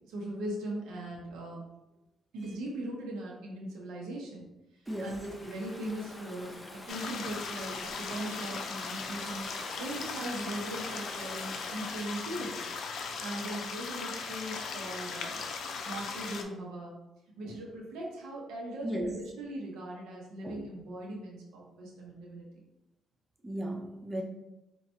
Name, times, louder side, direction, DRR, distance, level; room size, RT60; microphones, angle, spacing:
voice 1, 0.0-1.6 2.3-4.4 5.0-6.6 6.8-12.7 13.2-16.9 17.4-22.5, right 1 dB, 90° right, -2 dB, 0.9 m, -39 dB
Stream / Ocean, 4.9-12.1, left 1 dB, 15° left, 0.7 m, -46 dB
voice 2, 4.9-5.2 17.4-17.6 18.8-19.2 20.4-20.6 23.4-24.2, right 1 dB, 20° right, 3 dB, 0.5 m, -35 dB
sound 1, 6.9-16.4, left 5 dB, 65° left, 0.5 m, -38 dB
4.4 x 2.9 x 2.8 m, 0.95 s
cardioid pair, 90°, 0 cm